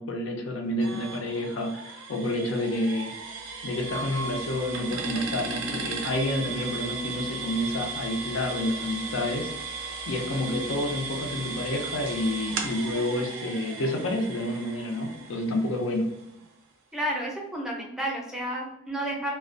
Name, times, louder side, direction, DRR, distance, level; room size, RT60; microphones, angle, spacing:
voice 1, 0.0-3.1 3.6-9.5 10.1-16.1, left 1 dB, 70° left, 3 dB, 0.5 m, -29 dB
sound 1, 0.8-16.5, right 4 dB, 75° right, 0.4 m, -36 dB
voice 2, 16.9-19.3, right 1 dB, ahead, -2 dB, 0.5 m, -31 dB
2.4 x 2.1 x 2.4 m, 0.81 s
head